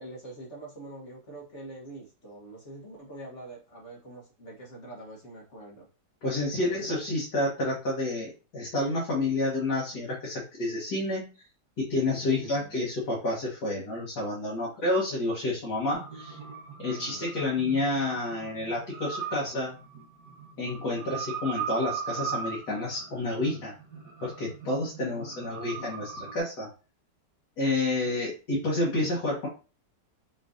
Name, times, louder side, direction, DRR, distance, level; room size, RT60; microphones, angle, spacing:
voice 1, 0.0-5.9 6.5-6.8 12.3-12.7 16.9-17.3 25.1-25.5, right 2 dB, 45° left, -2 dB, 1.4 m, -45 dB
voice 2, 6.2-11.3 11.8-16.4 16.8-19.8 20.6-23.8 24.2-26.7 27.6-29.5, left 2 dB, 65° left, -6 dB, 1.9 m, -29 dB
sound 1, 15.9-26.4, right 7 dB, 65° right, 1.6 m, -39 dB
6.1 x 3.2 x 2.6 m, 0.33 s
omnidirectional pair, 1.9 m